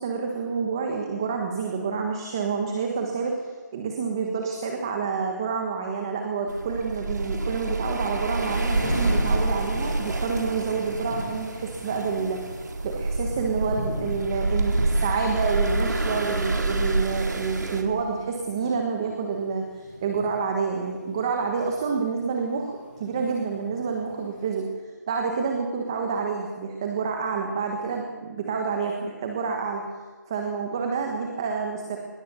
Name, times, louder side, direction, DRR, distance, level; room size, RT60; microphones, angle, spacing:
voice 1, 0.0-24.7 25.1-29.8 30.3-32.0, right 5 dB, 15° right, 2 dB, 1.3 m, -28 dB
sound 1, 6.5-17.8, right 2 dB, 65° right, 4.3 m, -27 dB
Thunder / Rain, 8.4-24.4, left 1 dB, 30° left, 6.4 m, -40 dB
24.0 x 20.5 x 6.9 m, 1.4 s
hypercardioid pair, 180°, 10 cm